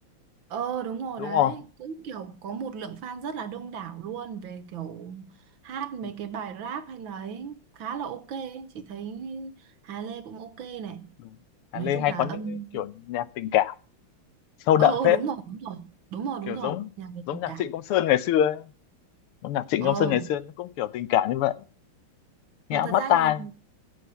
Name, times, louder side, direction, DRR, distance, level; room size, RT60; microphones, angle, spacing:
voice 1, 0.5-5.3 5.6-11.1 11.7-12.7 14.8-17.7 19.8-20.3 22.7-23.5, right 7 dB, 65° right, 1.7 m, -35 dB
voice 2, 1.2-1.5 11.7-12.4 12.7-13.7 14.7-15.2 16.5-16.9 17.3-18.6 19.4-21.5 22.7-23.4, left 12 dB, 85° left, 1.8 m, -24 dB
16.0 x 7.1 x 6.9 m
omnidirectional pair, 2.4 m